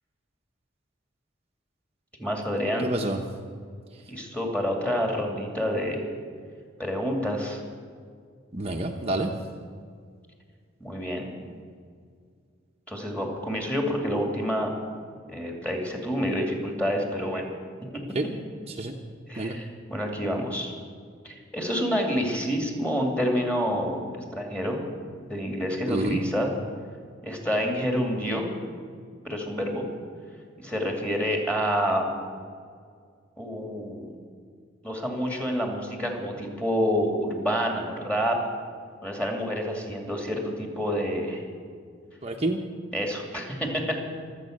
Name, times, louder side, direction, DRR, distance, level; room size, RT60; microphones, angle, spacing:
voice 1, 2.2-2.9 4.1-6.0 6.8-7.6 10.8-11.3 12.9-14.7 15.3-17.5 17.9-18.0 19.3-20.7 21.2-24.1 24.3-24.8 25.3-26.5 27.2-28.4 29.2-29.8 30.6-32.1 33.4-34.1 34.8-38.4 39.0-41.4 42.9-44.0, equal, 5° left, 1 dB, 2.5 m, -28 dB
voice 2, 2.8-3.2 8.5-9.3 18.1-18.3 18.7-18.9 19.4-19.6 25.9-26.2 42.2-42.6, right 2 dB, 35° right, 1 dB, 0.9 m, -28 dB
24.5 x 8.2 x 6.6 m, 2.1 s
head